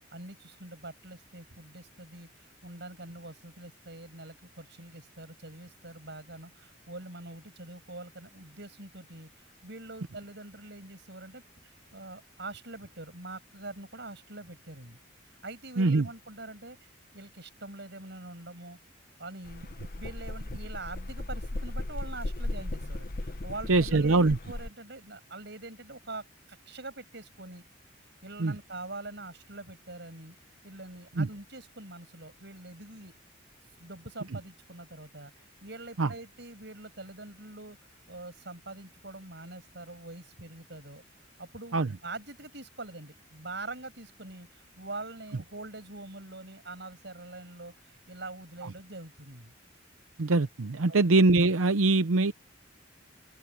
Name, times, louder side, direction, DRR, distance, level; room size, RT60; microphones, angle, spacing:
voice 1, 0.1-9.3 9.6-11.4 11.9-15.0 15.4-18.8 19.2-19.6 20.0-27.6 28.2-30.4 30.6-33.1 33.8-35.3 35.6-37.8 38.1-41.0 41.4-49.5 50.9-51.1, right 2 dB, 55° right, 7.2 m, -44 dB
sound 1, 19.4-24.7, left 2 dB, 45° left, 0.9 m, -36 dB
voice 2, 23.7-24.4 28.4-28.5 31.2-31.3 36.0-36.1 41.7-41.9 50.2-52.3, right 3 dB, 90° right, 0.7 m, -23 dB
open air
head